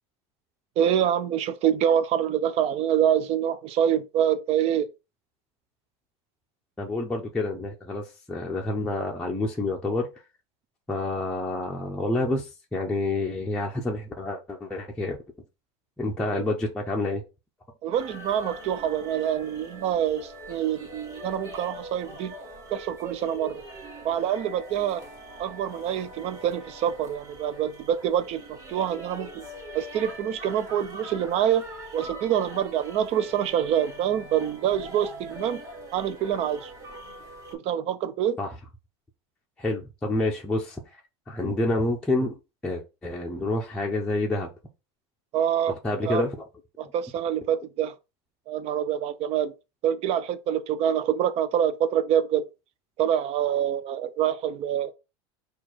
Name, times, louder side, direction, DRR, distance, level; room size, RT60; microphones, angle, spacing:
voice 1, 0.8-4.9 16.3-16.5 17.8-22.3 22.7-23.6 24.0-25.0 25.4-29.4 29.7-31.6 31.9-35.6 35.9-36.7 37.5-38.4 45.3-45.7 46.0-46.3 46.8-47.9 48.5-49.5 49.8-52.5 53.0-54.9, right 9 dB, 45° right, 0.6 m, -26 dB
voice 2, 6.8-10.1 10.9-15.2 16.0-17.2 38.4-38.5 39.6-41.0 41.3-42.3 42.6-44.5 45.8-46.4, left 2 dB, 5° left, 0.6 m, -28 dB
sound 1, 17.9-37.6, right 1 dB, 20° right, 1.6 m, -42 dB
4.5 x 2.4 x 4.4 m
supercardioid pair, 140°, 15 cm